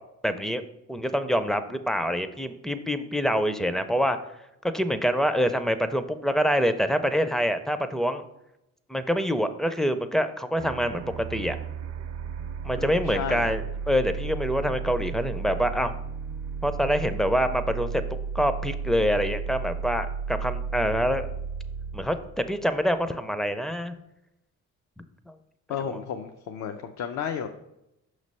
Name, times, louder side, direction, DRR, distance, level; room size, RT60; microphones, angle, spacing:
voice 1, 0.2-0.6 0.9-4.2 4.7-8.2 8.9-11.6 12.6-15.9 16.6-18.0 18.3-21.3 21.9-24.0 25.3-25.4 25.9-26.0, equal, ahead, 10 dB, 0.4 m, -26 dB
sound 1, 10.6-23.3, right 6 dB, 55° right, 0.5 m, -34 dB
voice 2, 12.8-13.5 25.7-27.5, left 8 dB, 70° left, 5 dB, 0.5 m, -32 dB
5.8 x 3.2 x 5.4 m, 0.87 s
cardioid pair, 90°, 30 cm